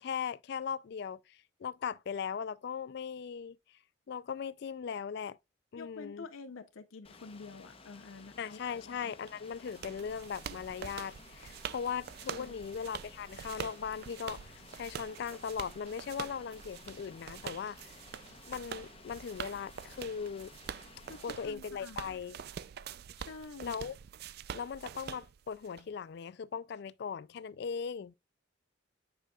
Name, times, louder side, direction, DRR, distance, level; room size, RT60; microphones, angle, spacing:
voice 1, 0.0-3.6 4.1-5.4 5.7-6.3 8.4-14.5 14.7-17.9 18.5-20.5 21.2-22.4 23.6-24.0 24.5-28.1, left 7 dB, 55° left, 0.3 m, -39 dB
voice 2, 5.8-8.6 8.9-9.1 12.2-12.6 21.1-22.0 23.2-23.8, left 4 dB, 90° left, 0.6 m, -48 dB
Rain, 7.0-21.5, left 4 dB, 30° left, 0.8 m, -56 dB
sound 1, 9.3-25.8, right 8 dB, 50° right, 0.3 m, -45 dB
9.1 x 5.1 x 2.3 m
head